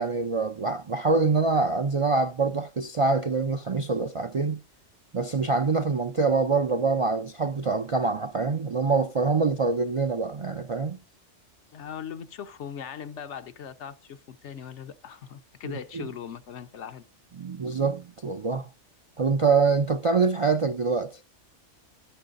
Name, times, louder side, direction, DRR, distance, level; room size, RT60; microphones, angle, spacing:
voice 1, 0.0-4.6 5.1-11.0 15.9-16.1 17.4-18.7 19.2-21.2, right 4 dB, 50° right, 0.4 m, -25 dB
voice 2, 11.7-17.0, left 8 dB, 75° left, 1.1 m, -39 dB
11.5 x 10.0 x 2.5 m
omnidirectional pair, 1.2 m